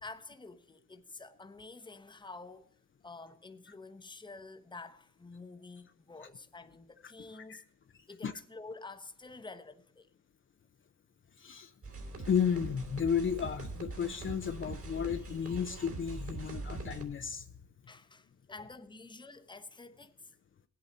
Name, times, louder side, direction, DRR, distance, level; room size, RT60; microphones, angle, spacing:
voice 1, 0.0-2.7 3.0-7.6 8.1-10.1 17.9-20.3, left 3 dB, 15° left, 1.0 m, -49 dB
voice 2, 11.4-11.7 12.2-17.4, left 7 dB, 40° left, 0.8 m, -33 dB
sound 1, 11.8-17.0, right 2 dB, 45° right, 3.3 m, -42 dB
19.0 x 8.4 x 4.1 m
cardioid pair, 90°, 30 cm